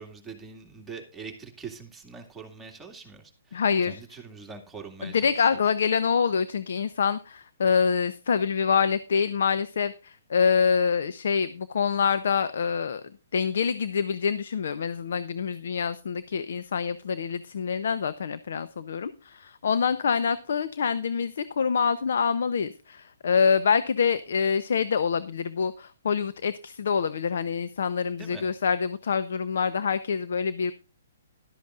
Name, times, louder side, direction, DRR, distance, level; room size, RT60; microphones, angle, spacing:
voice 1, 0.0-5.3 28.2-28.4, right 5 dB, 10° right, 1 dB, 2.3 m, -43 dB
voice 2, 3.5-4.0 5.0-13.0 13.3-30.7, left 6 dB, 70° left, 13 dB, 0.8 m, -26 dB
13.0 x 12.0 x 2.5 m, 0.31 s
hypercardioid pair, 145°, 0 cm